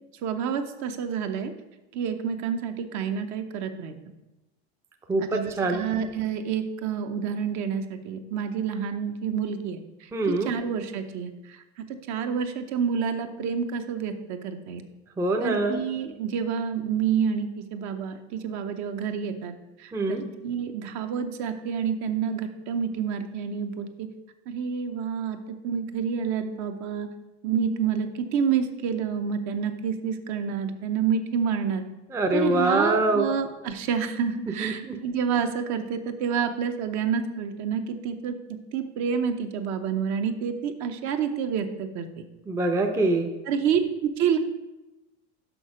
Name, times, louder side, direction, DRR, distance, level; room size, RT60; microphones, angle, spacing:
voice 1, 0.2-1.5 1.9-3.9 5.2-10.1 10.4-11.6 12.1-14.8 15.4-19.5 19.8-24.1 24.5-25.4 25.6-27.1 27.4-31.8 32.3-38.3 38.7-42.1 43.5-44.4, right 7 dB, 55° right, 7 dB, 0.8 m, -28 dB
voice 2, 5.1-5.8 10.1-10.5 15.2-15.8 19.9-20.2 32.1-33.3 34.6-35.0 42.5-43.3, right 2 dB, 10° right, 4 dB, 0.5 m, -24 dB
6.2 x 5.5 x 5.0 m, 1.0 s
supercardioid pair, 120°, 34 cm